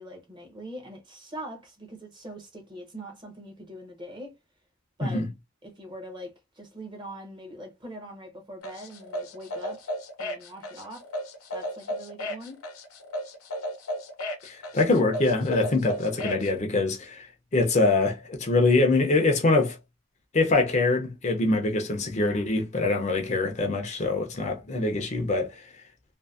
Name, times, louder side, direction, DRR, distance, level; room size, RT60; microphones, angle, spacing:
voice 1, 0.0-4.4 5.0-5.2 5.6-9.8 10.2-11.1 11.5-12.6 24.7-25.0, right 1 dB, 20° right, 0.7 m, -42 dB
sound 1, 8.6-16.5, equal, 90° left, 0.8 m, -34 dB
voice 2, 14.4-19.8 20.3-25.7, left 3 dB, 35° left, 0.5 m, -24 dB
2.6 x 2.6 x 2.3 m
head